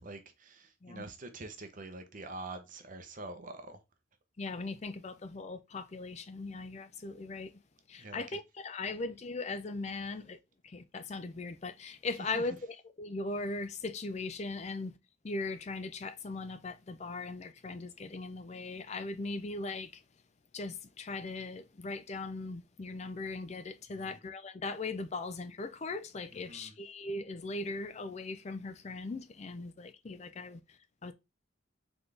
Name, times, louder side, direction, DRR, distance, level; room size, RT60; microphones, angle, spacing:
voice 1, 0.0-3.8 8.0-8.4 12.2-12.4 23.9-24.2 26.5-26.7, right 2 dB, 40° right, 0.7 m, -45 dB
voice 2, 4.4-7.6 7.9-10.4 10.6-15.0 15.2-20.0 20.5-31.1, left 3 dB, 35° left, 0.4 m, -39 dB
4.0 x 3.9 x 3.3 m
head